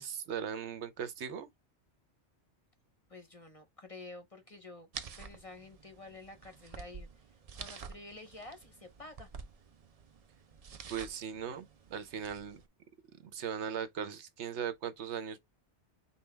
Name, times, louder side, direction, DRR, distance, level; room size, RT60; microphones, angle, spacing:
voice 1, 0.0-1.5 10.9-12.6 13.2-15.4, right 8 dB, 75° right, 1.0 m, -38 dB
voice 2, 3.1-4.9 5.2-9.3, left 2 dB, 35° left, 0.7 m, -50 dB
Paper letter, 4.9-12.7, right 6 dB, 50° right, 0.4 m, -49 dB
5.7 x 2.2 x 3.3 m
omnidirectional pair, 1.2 m